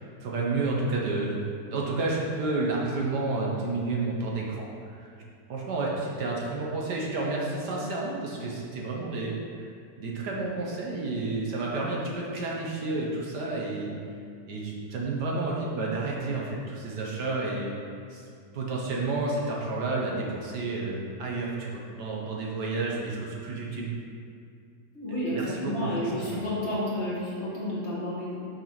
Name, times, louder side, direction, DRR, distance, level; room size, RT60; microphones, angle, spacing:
voice 1, 0.2-1.4 1.7-4.7 4.9-5.1 5.5-9.7 10.0-14.0 14.5-17.7 18.1-18.2 18.5-24.0 25.3-26.4, right 3 dB, 65° right, -3 dB, 1.6 m, -30 dB
voice 2, 24.9-28.4, left 1 dB, 40° left, -8 dB, 2.0 m, -31 dB
6.0 x 4.6 x 5.8 m, 2.4 s
omnidirectional pair, 1.9 m